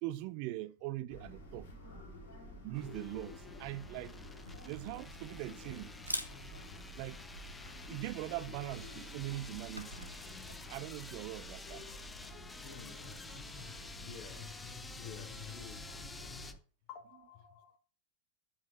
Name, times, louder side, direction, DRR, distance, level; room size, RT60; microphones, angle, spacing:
voice 1, 0.0-1.7 2.6-4.2 4.6-5.9 6.9-7.2 7.9-10.1 10.7-11.9 12.3-12.4, right 17 dB, 45° right, 0.5 m, -41 dB
sound 1, 1.1-16.5, left 2 dB, 60° left, 3.4 m, -50 dB
sound 2, 2.7-16.5, left 3 dB, 10° left, 0.6 m, -51 dB
Camera, 4.3-10.1, equal, 90° left, 0.8 m, -47 dB
voice 2, 12.6-13.1 13.9-14.4 15.0-15.8 16.9-17.8, left 7 dB, 40° left, 1.6 m, -52 dB
7.2 x 7.1 x 3.1 m
figure-of-eight pair, 90°, 0 cm